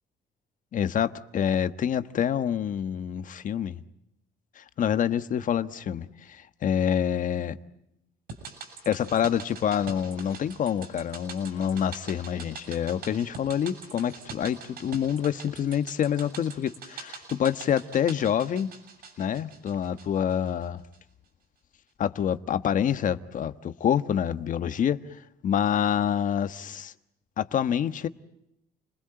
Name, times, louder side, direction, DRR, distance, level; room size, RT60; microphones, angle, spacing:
voice 1, 0.7-3.8 4.6-7.6 8.8-18.7 19.2-20.8 22.0-26.9 27.4-28.1, left 9 dB, 50° left, 1.3 m, -27 dB
sound 1, 8.3-20.7 20.9-21.0, right 5 dB, 65° right, 7.2 m, -44 dB
30.0 x 21.0 x 8.9 m
cardioid pair, 110°, 17 cm